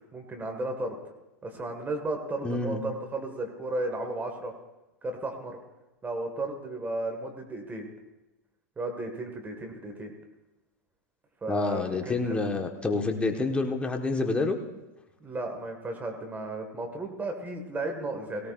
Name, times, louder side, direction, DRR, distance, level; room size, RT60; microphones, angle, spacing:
voice 1, 0.1-1.0 1.4-4.5 5.0-5.6 6.0-7.9 8.8-10.1 11.4-12.4 15.2-18.5, right 2 dB, 20° right, 4 dB, 1.9 m, -34 dB
voice 2, 2.4-2.8 11.5-14.6, left 3 dB, 10° left, 3 dB, 1.5 m, -28 dB
18.0 x 16.5 x 2.6 m, 0.99 s
hypercardioid pair, 95°, 9 cm